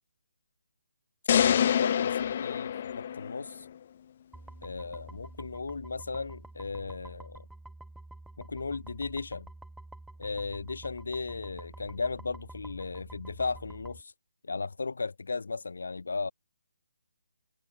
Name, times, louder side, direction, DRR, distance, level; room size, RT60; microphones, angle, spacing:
sound 1, 1.3-3.6, left 9 dB, 25° left, 0.9 m, -26 dB
voice 1, 1.4-3.7 4.6-7.5 8.4-9.5 10.2-14.1 14.4-16.3, left 4 dB, 75° left, 5.1 m, -36 dB
sound 2, 4.3-14.0, right 2 dB, ahead, 2.4 m, -48 dB
hypercardioid pair, 180°, 0 cm